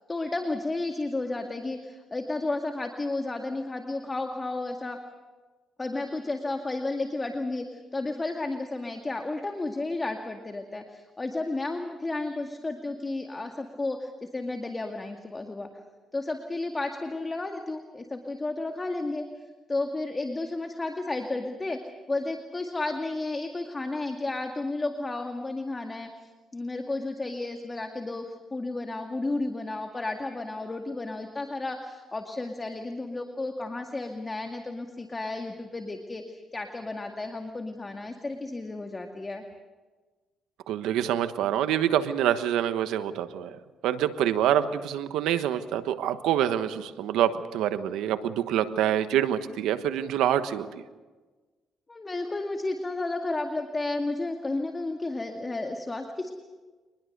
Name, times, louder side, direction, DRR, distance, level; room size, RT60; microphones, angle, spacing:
voice 1, 0.1-5.0 5.8-15.7 16.1-19.3 19.7-21.8 22.1-26.1 26.5-39.4 51.9-56.3, left 2 dB, 25° left, 4 dB, 2.1 m, -32 dB
voice 2, 40.7-43.6 43.8-50.7, right 10 dB, 90° right, 10 dB, 1.3 m, -26 dB
24.5 x 21.0 x 6.8 m, 1.3 s
cardioid pair, 90°, 0 cm